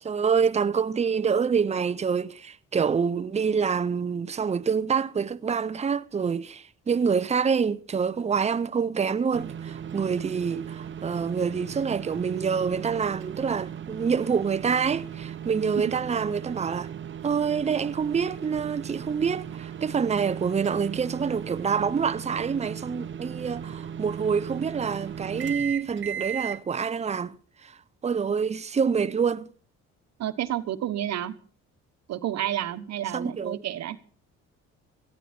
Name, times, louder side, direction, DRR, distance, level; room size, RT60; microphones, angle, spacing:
voice 1, 0.0-16.9 17.2-27.4 27.6-27.8 28.0-29.5 33.1-33.6, right 6 dB, 25° right, 0.7 m, -26 dB
sound 1, 9.3-26.6, right 8 dB, 40° right, 1.0 m, -37 dB
voice 2, 30.2-31.3 32.1-34.0, right 12 dB, 65° right, 1.2 m, -30 dB
18.0 x 14.5 x 4.3 m
cardioid pair, 90°, 29 cm